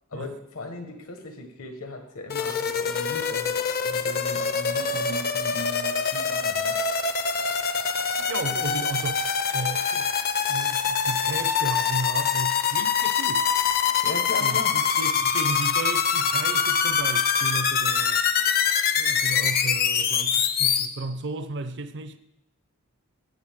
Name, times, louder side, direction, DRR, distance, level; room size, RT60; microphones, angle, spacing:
voice 1, 0.1-6.8 14.0-14.7, left 2 dB, 75° left, 1.4 m, -37 dB
sound 1, 2.3-20.9, left 6 dB, 45° left, 0.6 m, -24 dB
voice 2, 8.3-13.5 14.4-18.2 19.0-22.2, right 3 dB, 55° right, 0.6 m, -34 dB
13.0 x 7.8 x 3.7 m
head